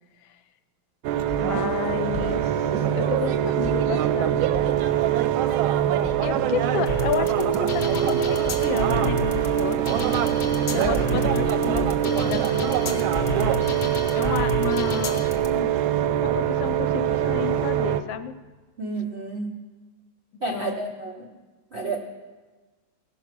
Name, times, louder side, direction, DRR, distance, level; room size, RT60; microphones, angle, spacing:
sound 1, 1.0-18.0, right 10 dB, 90° right, 1.4 m, -23 dB
sound 2, 1.3-12.8, right 1 dB, 10° left, 0.8 m, -38 dB
voice 1, 1.4-2.7 2.9-4.6 6.2-10.0 10.7-13.1 14.1-15.7 16.2-18.3 20.3-20.9, left 9 dB, 75° left, 12 dB, 1.2 m, -32 dB
sound 3, 6.9-15.5, left 2 dB, 60° left, 0.6 m, -31 dB
voice 2, 18.8-19.5 20.4-21.3 21.7-22.0, right 3 dB, 60° right, 2 dB, 0.6 m, -30 dB
16.0 x 5.5 x 5.9 m, 1.3 s
omnidirectional pair, 2.2 m